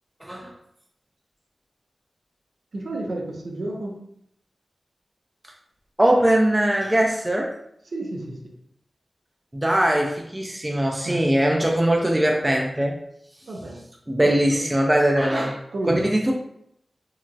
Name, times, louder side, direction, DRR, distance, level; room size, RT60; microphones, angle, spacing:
voice 1, 0.2-0.5 6.0-7.5 9.5-13.0 14.1-15.6 15.9-16.3, right 1 dB, 15° right, 0 dB, 0.3 m, -21 dB
voice 2, 2.7-4.0 7.9-8.5 11.0-11.4 13.5-13.8 14.2-14.6 15.7-16.1, right 2 dB, 75° right, -1 dB, 0.6 m, -31 dB
2.9 x 2.3 x 2.5 m, 0.73 s
wide cardioid pair, 110°, 0 cm